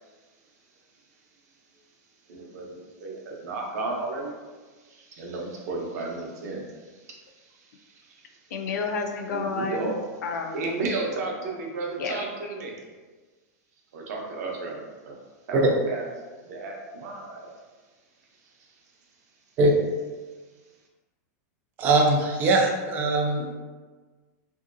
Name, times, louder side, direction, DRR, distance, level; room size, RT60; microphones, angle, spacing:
voice 1, 2.3-4.3 4.8-8.4 9.3-10.0 10.5-12.7 13.9-15.2 15.5-16.0 16.4-17.5, right 3 dB, 65° right, 0 dB, 0.7 m, -34 dB
voice 2, 8.5-9.9 10.2-10.6 12.0-12.3, left 4 dB, 85° left, 3 dB, 0.5 m, -30 dB
voice 3, 21.8-23.5, right 2 dB, 20° right, 1 dB, 0.3 m, -21 dB
2.9 x 2.7 x 2.5 m, 1.4 s
supercardioid pair, 175°, 9 cm